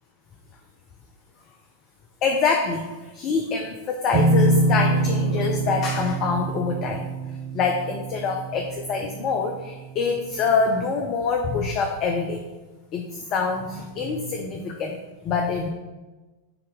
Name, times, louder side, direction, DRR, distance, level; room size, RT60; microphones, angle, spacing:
voice 1, 2.2-7.0 7.5-12.4 12.9-14.9 15.2-15.7, left 4 dB, 35° left, 2 dB, 0.6 m, -25 dB
sound 1, 4.1-9.7, right 2 dB, 45° right, 0.5 m, -24 dB
6.7 x 2.8 x 5.3 m, 1.2 s
figure-of-eight pair, 90°, 0 cm